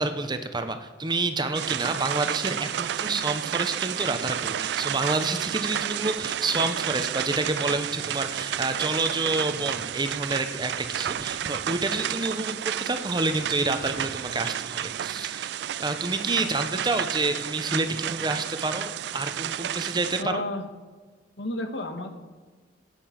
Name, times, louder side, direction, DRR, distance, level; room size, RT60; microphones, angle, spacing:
voice 1, 0.0-20.4, right 3 dB, 25° right, 8 dB, 0.9 m, -28 dB
sound 1, 1.6-20.2, right 10 dB, 65° right, 0.3 m, -31 dB
voice 2, 16.4-16.8 20.2-20.6 21.4-22.1, left 1 dB, 75° left, 5 dB, 1.6 m, -32 dB
15.5 x 9.1 x 5.9 m, 1.4 s
head